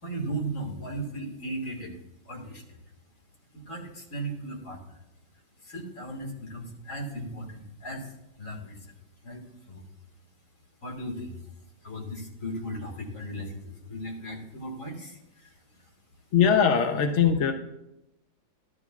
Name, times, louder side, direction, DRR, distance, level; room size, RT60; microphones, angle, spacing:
voice 1, 0.0-2.0 2.2-2.8 3.5-5.0 5.6-8.9 9.2-9.8 10.8-11.4 11.8-15.9, right 1 dB, 45° left, 1 dB, 2.2 m, -37 dB
voice 2, 16.3-17.5, left 7 dB, 60° left, 5 dB, 0.7 m, -21 dB
14.0 x 12.0 x 2.4 m, 0.86 s
omnidirectional pair, 2.1 m